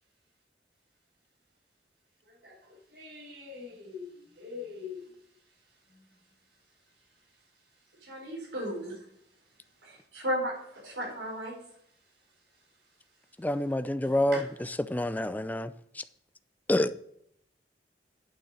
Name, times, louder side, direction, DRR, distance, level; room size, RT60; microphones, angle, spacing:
voice 1, 2.2-8.5 9.4-10.1 10.8-11.1 12.0-13.5 14.0-14.5, left 4 dB, 70° right, 4.8 m, -48 dB
voice 2, 8.0-9.0 9.8-10.5 10.8-11.5, equal, 85° right, 4.8 m, -34 dB
voice 3, 13.4-14.4 14.9-15.7 16.7-16.9, left 1 dB, 10° left, 0.4 m, -27 dB
8.9 x 7.4 x 6.6 m
head